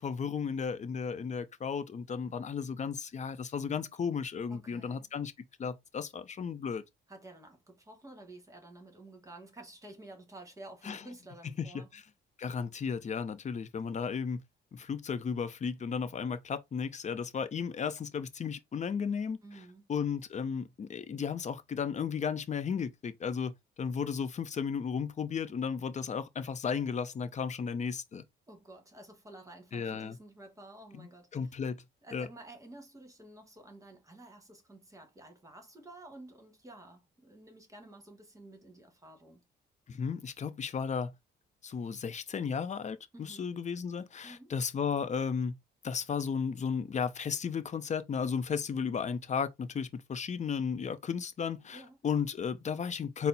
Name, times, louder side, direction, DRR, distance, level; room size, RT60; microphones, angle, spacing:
voice 1, 0.0-5.3 5.6-6.8 10.9-11.0 11.7-11.8 12.4-14.4 14.7-19.4 19.9-28.2 29.7-30.2 31.0-31.1 31.3-31.8 32.1-32.3 39.9-41.1 41.6-45.6 45.8-53.3, left 6 dB, 35° left, 0.6 m, -34 dB
voice 2, 4.5-5.1 7.1-11.9 19.4-19.8 28.5-31.5 32.0-39.4 43.1-43.5 44.2-44.5 51.7-52.0, right 2 dB, 15° right, 1.5 m, -51 dB
4.2 x 2.0 x 4.0 m
cardioid pair, 90°, 20 cm